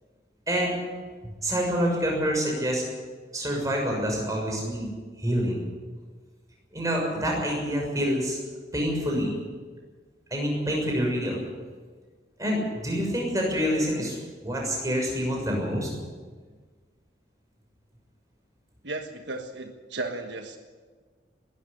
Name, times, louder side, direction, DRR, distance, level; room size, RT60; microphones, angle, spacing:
voice 1, 1.4-2.8 3.3-4.9 5.2-5.6 6.7-8.4 8.7-9.3 10.3-11.4 12.4-14.2 14.4-15.9, equal, 20° right, 0 dB, 6.6 m, -27 dB
voice 2, 18.8-20.6, right 2 dB, 75° right, 5 dB, 1.4 m, -35 dB
21.0 x 13.0 x 10.0 m, 1.5 s
head